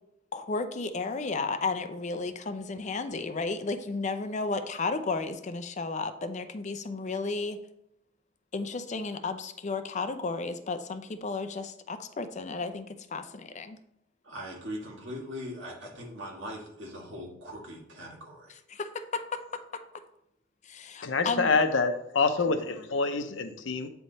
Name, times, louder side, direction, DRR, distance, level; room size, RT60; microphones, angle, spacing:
voice 1, 0.3-7.6 8.5-13.8 18.7-19.4 19.7-19.8 20.7-21.5, left 3 dB, 40° left, 9 dB, 0.5 m, -33 dB
voice 2, 14.2-18.6, equal, 70° right, -2 dB, 2.1 m, -40 dB
voice 3, 21.0-23.9, left 4 dB, 85° left, 8 dB, 0.7 m, -26 dB
8.8 x 3.5 x 4.1 m, 0.80 s
head